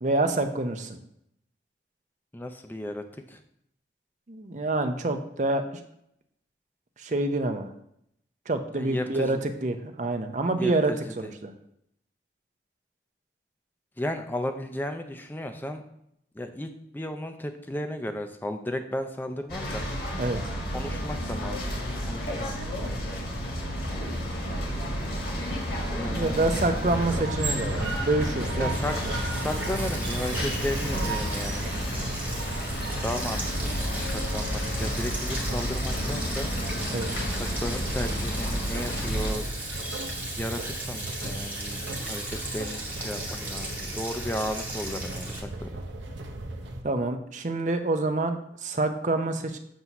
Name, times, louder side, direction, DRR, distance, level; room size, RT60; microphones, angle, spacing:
voice 1, 0.0-1.0 4.3-5.8 7.0-7.7 8.5-11.5 20.2-20.4 25.5-25.6 26.0-28.7 36.9-37.1 46.8-49.6, right 2 dB, 40° right, 7 dB, 0.6 m, -27 dB
voice 2, 2.3-3.4 8.7-9.5 10.6-11.3 14.0-15.8 16.4-19.8 20.7-22.6 25.9-26.8 28.6-31.6 33.0-33.4 33.7-36.5 37.6-39.5 40.4-45.7, left 1 dB, 10° left, 6 dB, 0.5 m, -34 dB
sound 1, 19.5-39.3, equal, 65° left, 1.5 m, -31 dB
sound 2, 26.9-46.8, right 2 dB, 90° right, 0.7 m, -36 dB
Sink (filling or washing), 28.7-45.4, right 1 dB, 10° right, 1.0 m, -37 dB
7.6 x 2.7 x 5.8 m, 0.75 s
head